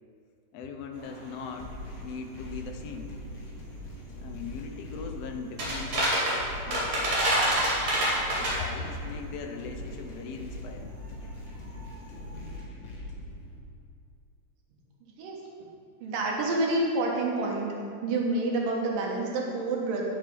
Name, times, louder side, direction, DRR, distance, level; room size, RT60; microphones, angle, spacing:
voice 1, 0.5-1.7 2.0-3.1 4.2-6.2 6.6-7.3 8.4-10.9, left 4 dB, 75° left, 4 dB, 1.5 m, -39 dB
sound 1, 0.9-12.6, right 1 dB, 50° right, 3.5 m, -31 dB
sound 2, 1.6-13.6, left 1 dB, 50° left, 1.6 m, -42 dB
voice 2, 16.0-17.8 18.0-20.1, right 2 dB, 85° right, -1 dB, 3.0 m, -28 dB
11.0 x 6.3 x 5.4 m, 2.3 s
omnidirectional pair, 3.8 m